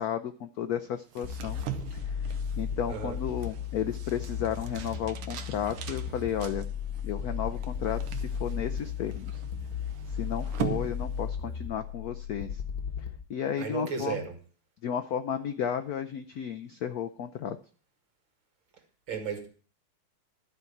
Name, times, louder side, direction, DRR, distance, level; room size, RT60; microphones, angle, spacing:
voice 1, 0.0-1.6 1.9-6.7 7.0-9.4 10.1-12.6 13.3-14.2 14.8-17.6, left 9 dB, 80° left, 8 dB, 0.8 m, -33 dB
sound 1, 1.1-11.6, right 11 dB, 85° right, 1.7 m, -42 dB
sound 2, 1.2-13.2, left 7 dB, 55° left, 1.5 m, -35 dB
voice 2, 13.6-14.4 19.1-19.5, right 6 dB, 65° right, 5 dB, 2.7 m, -34 dB
12.5 x 4.5 x 8.3 m, 0.40 s
omnidirectional pair, 2.3 m